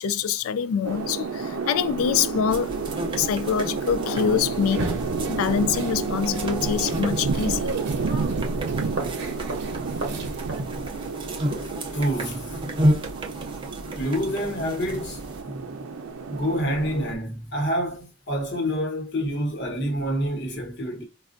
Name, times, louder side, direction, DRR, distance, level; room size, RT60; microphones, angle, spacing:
voice 1, 0.0-2.7 3.2-5.0 5.3-7.7, left 7 dB, 80° left, 0.3 m, -25 dB
sound 1, 0.8-17.2, right 4 dB, 90° right, 0.5 m, -31 dB
sound 2, 2.5-15.4, right 1 dB, 25° right, 0.4 m, -32 dB
sound 3, 4.6-10.6, right 2 dB, 55° right, 0.8 m, -34 dB
voice 2, 8.7-9.1 10.5-10.9 11.5-12.6 13.9-15.7 16.3-21.1, equal, 55° left, 1.0 m, -28 dB
4.3 x 2.3 x 2.5 m
head